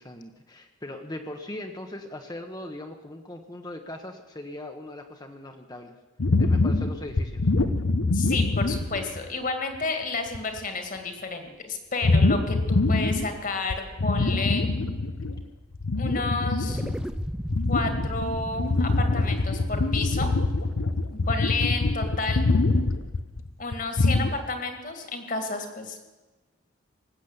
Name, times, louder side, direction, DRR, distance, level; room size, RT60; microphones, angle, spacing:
voice 1, 0.0-6.0 6.4-7.5, left 1 dB, 20° left, 4 dB, 0.9 m, -39 dB
sound 1, 6.2-9.3 9.7-9.8 10.3-10.6 12.0-13.4 13.7-15.4 15.7-24.3, left 2 dB, 90° left, 0.8 m, -24 dB
voice 2, 8.1-14.6 16.0-16.8 17.7-20.3 21.3-22.5 23.6-26.0, left 3 dB, 40° left, 6 dB, 2.0 m, -31 dB
sound 2, 16.7-21.3, equal, 5° right, 0.5 m, -37 dB
19.0 x 8.3 x 8.0 m, 1.2 s
head